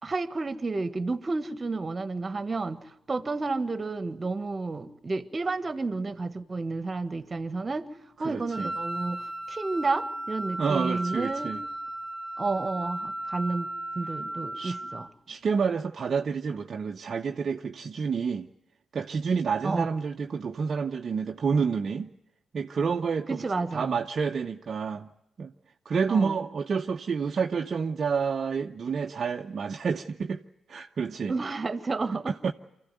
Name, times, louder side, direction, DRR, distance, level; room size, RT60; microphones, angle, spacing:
voice 1, 0.0-7.9 8.2-11.5 12.4-13.7 13.9-15.1 19.6-19.9 23.3-24.0 26.1-26.4 31.3-32.4, right 3 dB, 35° right, 1.5 m, -31 dB
voice 2, 8.2-8.7 10.6-11.6 14.6-14.8 15.3-18.5 18.9-22.1 22.5-23.4 23.7-25.1 25.4-25.5 25.8-30.4 30.7-31.4 32.4-32.5, right 5 dB, 55° right, 0.8 m, -29 dB
Wind instrument woodwind instrument, 8.5-15.1, right 1 dB, 15° right, 2.5 m, -35 dB
24.5 x 15.0 x 9.2 m
supercardioid pair, 55°, 0 cm